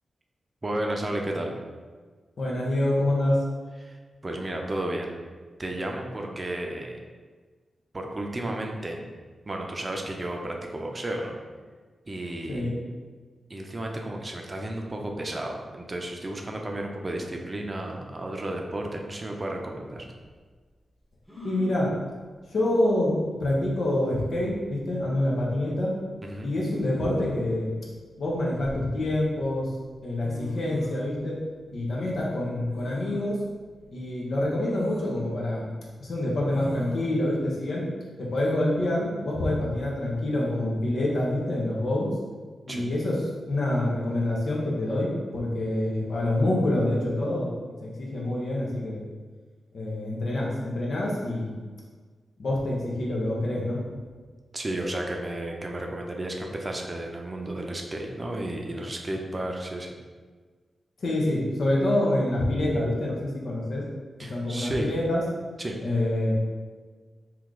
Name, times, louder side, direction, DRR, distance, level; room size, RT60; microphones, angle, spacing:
voice 1, 0.6-1.5 3.8-5.1 5.6-7.0 7.9-9.0 9.5-11.4 12.1-12.6 13.5-20.1 26.2-26.5 42.7-42.9 54.5-59.9 64.2-64.9 65.6-65.8, right 1 dB, 35° right, 1 dB, 0.6 m, -33 dB
voice 2, 2.4-3.4 12.5-12.7 21.4-21.9 22.5-25.9 26.4-27.7 28.2-29.7 30.0-31.4 31.7-33.4 33.9-35.7 36.0-37.9 38.2-42.1 42.7-43.2 43.5-47.5 47.8-49.0 49.7-51.5 52.4-53.8 61.0-63.8 64.3-65.2 65.8-66.3, left 1 dB, 70° left, -4 dB, 0.9 m, -26 dB
sound 1, 21.3-21.8 23.3-23.4 23.7-24.2 25.5-25.8 26.8-27.6 28.3-29.3 30.0-30.1 30.2-31.1 32.7-33.3 33.8-33.9 34.6-35.1 36.5-37.1, equal, 5° left, 0.9 m, -41 dB
3.0 x 2.5 x 3.7 m, 1.5 s
supercardioid pair, 40°, 0 cm